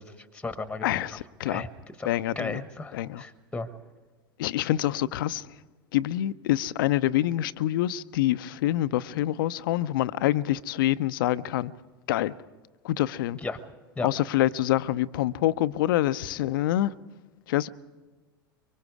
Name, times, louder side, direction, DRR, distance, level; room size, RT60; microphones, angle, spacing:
voice 1, 0.0-0.9 1.4-1.7 2.0-2.1 2.4-3.7 13.4-13.6 14.0-14.1, left 3 dB, 10° left, 1.2 m, -34 dB
voice 2, 0.8-1.6 2.0-2.6 2.9-3.2 4.4-5.5 5.9-11.7 12.1-12.3 12.8-13.4 14.0-16.9 17.5-17.7, left 14 dB, 60° left, 0.6 m, -26 dB
24.5 x 24.0 x 4.8 m
figure-of-eight pair, 85°, 13 cm